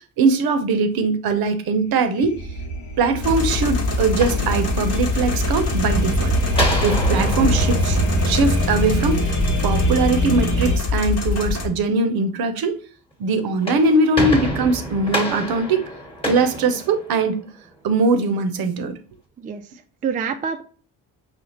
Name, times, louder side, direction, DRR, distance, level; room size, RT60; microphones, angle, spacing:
voice 1, 0.0-2.4 3.0-6.3 6.8-9.3 9.6-12.8 13.2-15.8 16.2-17.4 17.8-19.0, right 3 dB, 55° right, 0.7 m, -21 dB
sound 1, 2.1-10.8, right 2 dB, 85° left, 1.1 m, -24 dB
sound 2, 3.2-11.7, left 4 dB, 35° left, 1.0 m, -24 dB
sound 3, 4.2-5.2 6.5-9.0 13.4-17.5, equal, 10° left, 1.2 m, -28 dB
voice 2, 19.4-20.6, right 6 dB, 20° right, 0.4 m, -27 dB
4.9 x 2.4 x 2.9 m
hypercardioid pair, 50°, 44 cm